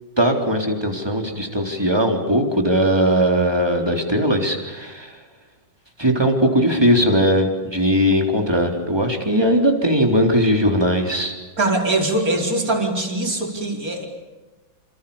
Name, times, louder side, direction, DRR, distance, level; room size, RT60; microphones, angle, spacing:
voice 1, 0.2-5.1 6.0-11.3, equal, 10° right, 3 dB, 3.9 m, -19 dB
voice 2, 11.6-14.1, right 2 dB, 45° right, 1 dB, 5.2 m, -22 dB
28.5 x 27.5 x 7.2 m, 1.2 s
omnidirectional pair, 2.1 m